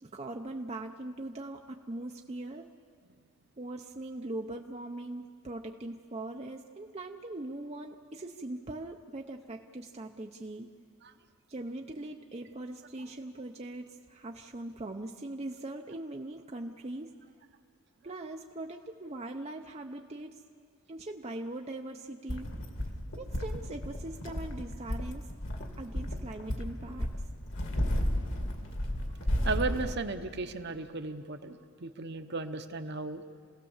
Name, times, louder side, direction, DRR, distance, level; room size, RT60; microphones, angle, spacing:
voice 1, 0.0-2.7 3.6-10.7 11.5-17.2 18.0-20.3 20.9-22.5 23.2-25.3 25.8-27.1, right 2 dB, 30° right, 3 dB, 0.6 m, -41 dB
sound 1, 22.3-29.9, equal, 60° left, 2.2 m, -33 dB
voice 2, 29.4-33.2, right 3 dB, 50° right, 8 dB, 1.0 m, -35 dB
27.5 x 17.0 x 7.2 m, 2.1 s
head